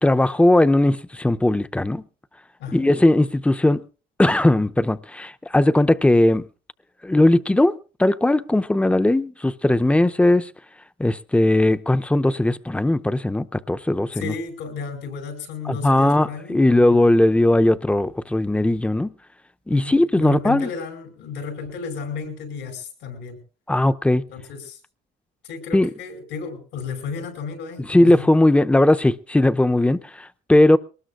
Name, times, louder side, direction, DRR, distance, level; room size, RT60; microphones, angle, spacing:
voice 1, 0.0-2.0 2.7-3.8 4.2-6.4 7.0-10.5 11.0-14.3 15.7-19.1 19.7-20.7 23.7-24.2 25.7-25.9 27.8-30.8, left 1 dB, 5° left, 0.6 m, -18 dB
voice 2, 14.1-16.6 17.0-17.2 19.7-23.4 24.3-24.8 25.4-28.2, left 5 dB, 90° left, 5.1 m, -33 dB
22.5 x 19.5 x 2.5 m
supercardioid pair, 85°, 20 cm